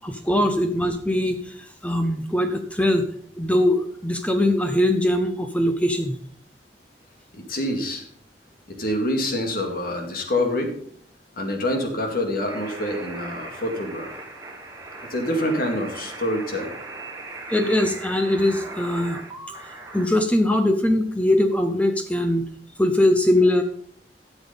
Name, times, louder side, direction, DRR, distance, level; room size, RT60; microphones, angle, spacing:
voice 1, 0.0-3.0 3.4-6.2 17.5-19.2 19.6-22.5 22.8-23.6, left 1 dB, 10° left, 6 dB, 0.7 m, -21 dB
voice 2, 7.3-8.0 8.7-10.7 11.3-14.1 15.1-16.7, left 1 dB, 55° left, 3 dB, 2.3 m, -26 dB
sound 1, 12.5-20.1, right 2 dB, 20° right, 1.7 m, -39 dB
13.0 x 7.3 x 5.1 m, 0.65 s
head